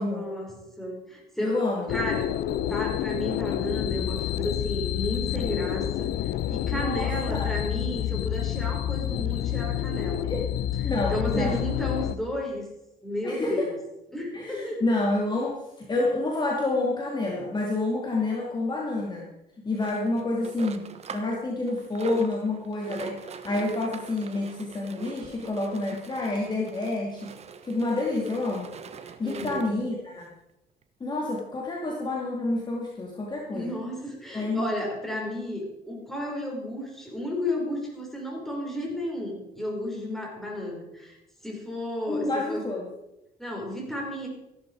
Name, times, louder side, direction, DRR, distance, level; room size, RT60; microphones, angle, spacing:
voice 1, 0.0-2.3 2.6-10.3 10.8-12.6 13.0-13.8 14.1-14.8 29.2-29.8 33.5-41.2 41.4-42.6 43.4-44.3, left 1 dB, ahead, -2 dB, 5.4 m, -33 dB
voice 2, 1.4-1.9 6.8-7.5 10.3-10.5 10.8-11.6 13.2-13.7 14.3-19.3 19.6-27.4 27.6-28.7 29.0-30.3 31.0-33.7 34.3-34.7 42.1-42.9, left 2 dB, 25° left, -2 dB, 2.5 m, -28 dB
sound 1, 1.9-12.2, left 12 dB, 70° left, 0.8 m, -29 dB
sound 2, 19.8-21.4 21.7-29.8 30.5-30.6 30.8-30.9 31.4-31.5, right 6 dB, 40° right, 1.2 m, -43 dB
15.0 x 12.0 x 4.8 m, 0.91 s
cardioid pair, 110°, 17 cm